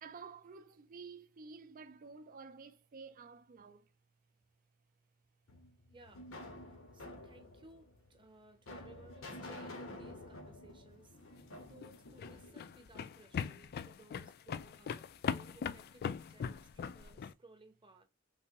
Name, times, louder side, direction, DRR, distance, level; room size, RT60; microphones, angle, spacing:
voice 1, 0.0-3.9, right 5 dB, 45° right, 0.4 m, -51 dB
sound 1, 5.5-13.6, left 1 dB, 80° left, 1.1 m, -50 dB
voice 2, 5.9-11.2 11.6-18.0, right 2 dB, 25° right, 0.8 m, -60 dB
sound 2, 11.7-17.3, left 7 dB, 50° left, 0.3 m, -40 dB
3.3 x 2.9 x 2.9 m
head